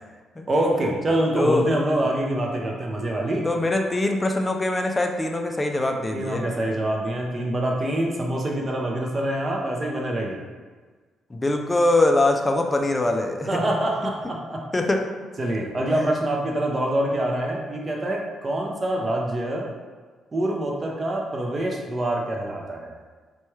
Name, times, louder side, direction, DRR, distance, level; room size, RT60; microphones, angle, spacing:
voice 1, 0.5-3.5 6.1-10.4 13.5-14.6 15.4-19.7 20.3-23.0, right 1 dB, 30° right, -1 dB, 0.6 m, -25 dB
voice 2, 3.4-6.5 11.3-13.5 14.7-15.0, left 2 dB, 20° left, 4 dB, 0.4 m, -22 dB
4.2 x 2.3 x 3.1 m, 1.4 s
cardioid pair, 90°, 0 cm